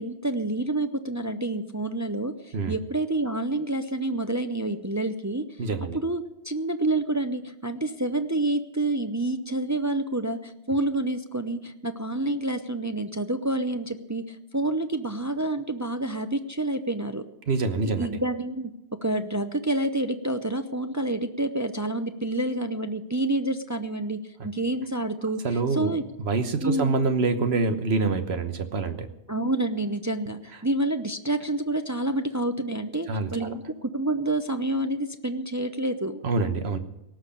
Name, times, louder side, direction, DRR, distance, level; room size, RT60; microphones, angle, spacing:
voice 1, 0.0-5.5 5.9-17.2 18.0-18.7 19.0-26.0 26.6-27.0 29.3-36.2, right 2 dB, 20° right, 8 dB, 0.5 m, -28 dB
voice 2, 5.6-6.0 17.5-18.2 25.4-25.9 26.2-29.1 33.1-33.5 36.2-36.8, right 3 dB, 65° right, 8 dB, 1.4 m, -26 dB
18.0 x 6.4 x 9.9 m, 0.88 s
omnidirectional pair, 1.2 m